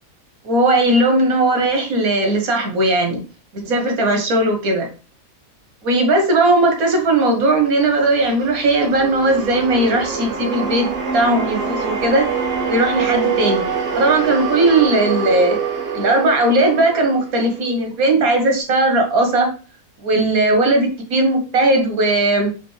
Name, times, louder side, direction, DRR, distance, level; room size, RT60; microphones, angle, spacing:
voice 1, 0.4-3.2 3.5-4.9 5.8-12.3 12.6-13.7 13.9-15.6 15.9-19.5 20.0-22.5, right 2 dB, 80° right, 4 dB, 1.6 m, -17 dB
sound 1, 7.4-17.8, right 6 dB, 55° right, 1.1 m, -25 dB
5.1 x 2.9 x 3.2 m, 0.34 s
omnidirectional pair, 1.5 m